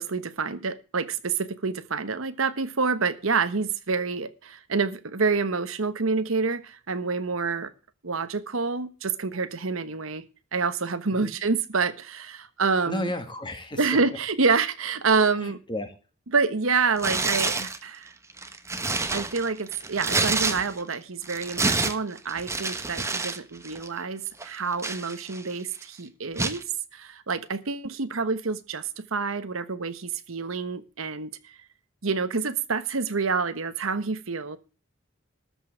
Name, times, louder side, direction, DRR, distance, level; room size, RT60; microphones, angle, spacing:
voice 1, 0.0-7.7 8.0-10.2 10.5-13.1 13.8-15.6 16.3-18.1 19.1-26.6 26.9-31.6 32.0-34.6, right 4 dB, 80° right, 1.1 m, -27 dB
voice 2, 12.9-13.8 15.3-15.9, left 1 dB, 25° left, 2.2 m, -33 dB
Tearing, 17.0-17.8 18.3-20.9 21.2-23.4 23.6-23.9 24.4-25.6 26.4-26.6, right 3 dB, 15° right, 1.1 m, -28 dB
13.5 x 5.5 x 7.7 m
head